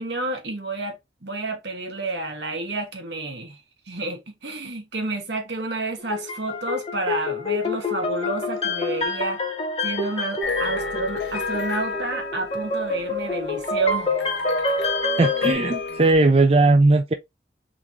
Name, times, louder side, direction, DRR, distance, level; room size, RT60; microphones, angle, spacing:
voice 1, 0.0-3.6 3.9-9.4 9.8-14.1, right 2 dB, 80° right, 1.5 m, -30 dB
sound 1, 6.0-15.5, left 3 dB, 35° left, 1.0 m, -27 dB
sound 2, 10.4-16.1, left 4 dB, 75° left, 0.8 m, -31 dB
voice 2, 15.2-17.1, right 2 dB, 35° right, 0.4 m, -18 dB
3.8 x 2.8 x 4.6 m
head